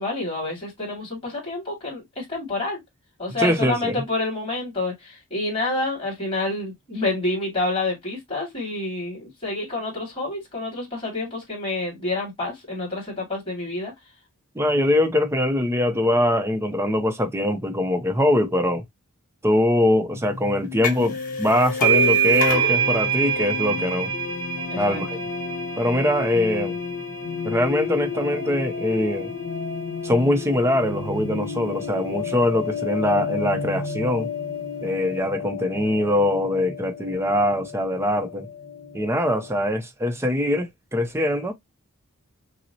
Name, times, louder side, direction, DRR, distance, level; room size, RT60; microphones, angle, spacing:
voice 1, 0.0-2.8 3.2-13.9 24.7-25.0, left 2 dB, 25° left, 2.2 m, -28 dB
voice 2, 3.3-3.9 14.6-18.8 19.4-24.1 24.8-25.2 25.8-26.8 27.4-29.3 30.0-34.3 34.8-38.5 38.9-41.5, left 1 dB, 10° right, 0.5 m, -22 dB
sound 1, 20.1-39.6, left 5 dB, 60° left, 1.1 m, -32 dB
sound 2, 20.8-21.2 21.4-28.7, right 5 dB, 40° left, 1.3 m, -25 dB
5.8 x 2.0 x 2.7 m
head